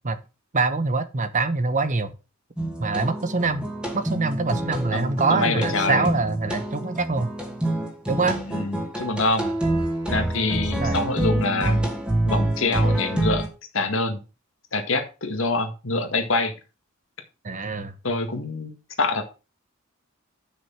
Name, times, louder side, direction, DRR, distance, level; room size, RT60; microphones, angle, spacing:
voice 1, 0.5-2.1 2.8-3.7 3.9-7.3 8.1-8.4 10.8-11.0 17.4-17.9, right 3 dB, 40° right, 11 dB, 1.0 m, -24 dB
sound 1, 2.6-13.5, right 1 dB, 5° right, 2.6 m, -27 dB
voice 2, 4.9-6.1 8.5-9.5 10.1-11.8 12.3-13.5 13.7-14.2 14.7-16.6 18.0-19.2, left 3 dB, 70° left, 5 dB, 1.9 m, -25 dB
7.9 x 6.3 x 5.9 m, 0.30 s
head